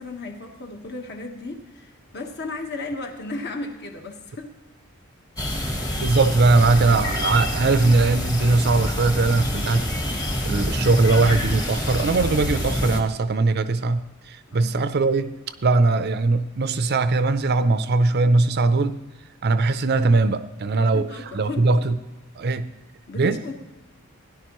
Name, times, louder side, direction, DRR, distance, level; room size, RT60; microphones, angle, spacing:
voice 1, 0.0-4.5 6.2-6.3 14.5-14.7 20.8-21.7 23.1-23.5, left 2 dB, 50° left, 1.4 m, -35 dB
sound 1, 5.4-13.0, left 1 dB, 15° left, 1.2 m, -27 dB
voice 2, 6.0-9.9 10.4-14.0 14.3-15.3 15.6-19.0 19.4-21.1 21.3-22.0 22.4-22.7 23.2-23.4, right 3 dB, 45° right, 0.5 m, -20 dB
17.0 x 10.5 x 3.1 m
head